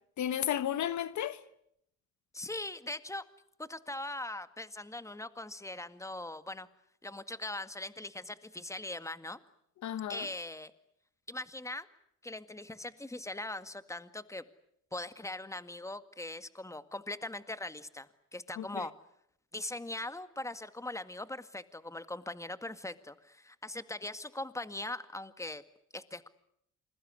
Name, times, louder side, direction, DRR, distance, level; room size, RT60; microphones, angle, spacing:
voice 1, 0.2-1.4 9.8-10.3 18.6-18.9, left 10 dB, 65° left, 1.3 m, -33 dB
voice 2, 2.3-3.2 3.6-6.7 7.0-9.4 10.1-10.7 11.3-11.9 12.2-14.4 14.9-18.9 19.5-25.6 25.9-26.3, left 2 dB, 10° left, 1.9 m, -41 dB
27.5 x 22.0 x 9.7 m
supercardioid pair, 65°, 31 cm